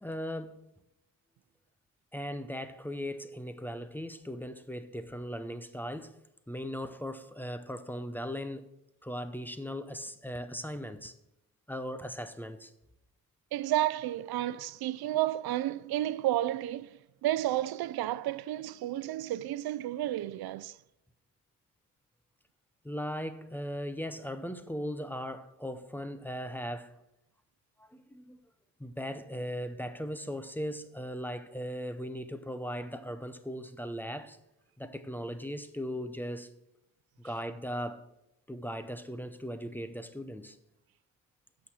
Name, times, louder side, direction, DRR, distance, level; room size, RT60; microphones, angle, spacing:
voice 1, 0.0-0.7 2.1-6.1 6.5-8.7 9.0-11.1 11.7-12.7 22.8-27.0 27.8-28.4 28.8-34.4 34.8-36.5 37.2-38.1 38.5-40.6, equal, 5° left, 0.6 m, -38 dB
voice 2, 13.5-20.8, right 13 dB, 75° right, 0.5 m, -31 dB
8.7 x 6.4 x 7.7 m
cardioid pair, 135°, 37 cm